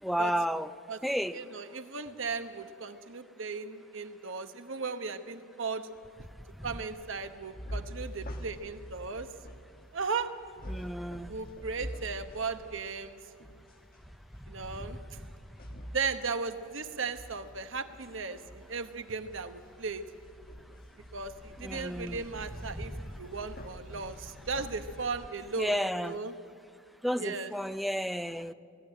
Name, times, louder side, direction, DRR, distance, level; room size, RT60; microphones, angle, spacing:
voice 1, 0.0-0.7 1.0-1.4 6.6-6.7 10.7-11.3 14.8-15.0 21.6-22.2 22.7-23.2 25.6-26.2 27.0-28.5, equal, ahead, 11 dB, 0.4 m, -32 dB
voice 2, 1.3-5.9 6.6-9.3 9.9-10.3 11.3-13.2 14.5-15.2 15.9-20.1 21.1-25.8 26.0-26.3 27.2-27.5, right 4 dB, 65° right, 9 dB, 1.0 m, -36 dB
sound 1, 7.0-25.3, equal, 45° left, 1.4 m, -46 dB
18.0 x 15.0 x 9.8 m, 2.4 s
head